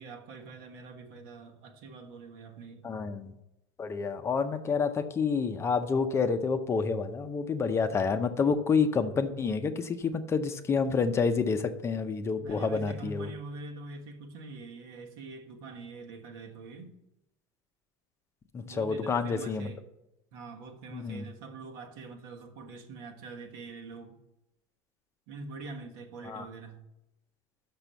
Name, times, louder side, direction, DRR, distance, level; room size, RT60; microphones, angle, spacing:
voice 1, 0.0-2.8 12.4-16.9 18.6-19.8 20.3-24.2 25.3-26.8, right 3 dB, 80° right, 1.4 m, -44 dB
voice 2, 2.8-3.3 3.8-13.3 18.5-19.7 20.9-21.2 26.2-26.4, left 5 dB, 25° left, 0.6 m, -28 dB
6.1 x 6.0 x 6.8 m
cardioid pair, 140°, 12 cm